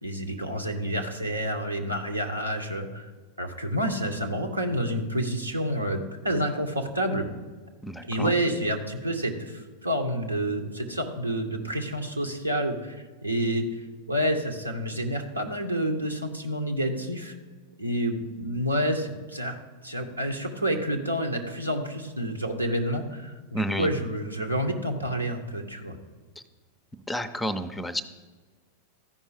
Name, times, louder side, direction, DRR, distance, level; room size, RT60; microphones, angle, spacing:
voice 1, 0.0-3.1 3.4-7.3 8.0-13.0 13.2-13.7 14.1-17.3 17.8-19.6 19.8-26.0, equal, 85° right, 3 dB, 1.0 m, -29 dB
voice 2, 7.8-8.3 23.5-23.9 27.1-28.0, equal, 5° left, 11 dB, 0.5 m, -30 dB
13.5 x 5.4 x 4.9 m, 1.4 s
figure-of-eight pair, 90°, 0 cm